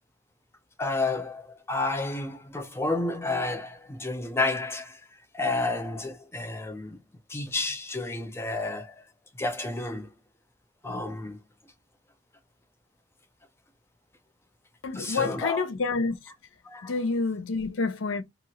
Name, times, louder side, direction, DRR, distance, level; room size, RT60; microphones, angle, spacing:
voice 1, 0.8-7.0 7.3-9.1 9.3-10.1 10.8-11.4 14.9-15.7 16.6-16.9, left 2 dB, 15° left, 0.4 m, -31 dB
voice 2, 14.8-16.2 16.8-18.2, left 4 dB, 75° left, 0.6 m, -28 dB
2.9 x 2.4 x 2.8 m
head